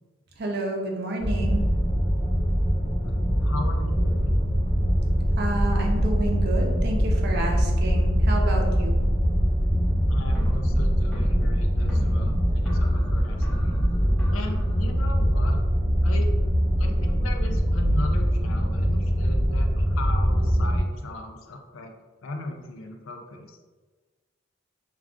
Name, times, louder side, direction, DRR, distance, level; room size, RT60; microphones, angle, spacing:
voice 1, 0.4-1.7 5.4-9.0, right 2 dB, 50° right, 1 dB, 0.5 m, -30 dB
sound 1, 1.2-20.8, equal, 25° right, 0.9 m, -23 dB
voice 2, 3.0-4.4 10.1-13.9 14.3-15.6 16.0-16.3 16.8-22.0 22.2-23.6, left 2 dB, 75° left, 4 dB, 0.4 m, -37 dB
sound 2, 9.9-14.9, equal, ahead, 0.5 m, -40 dB
2.3 x 2.2 x 3.6 m, 1.3 s
head